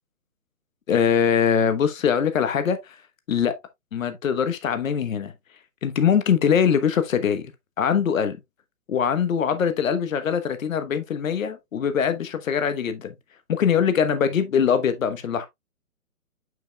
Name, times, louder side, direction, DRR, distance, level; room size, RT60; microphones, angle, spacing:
voice 1, 0.9-3.0 3.3-3.5 3.9-5.3 5.8-7.4 7.8-8.4 8.9-13.1 13.5-15.5, left 7 dB, 60° left, 1.2 m, -22 dB
7.3 x 6.3 x 2.3 m
hypercardioid pair, 150°, 45 cm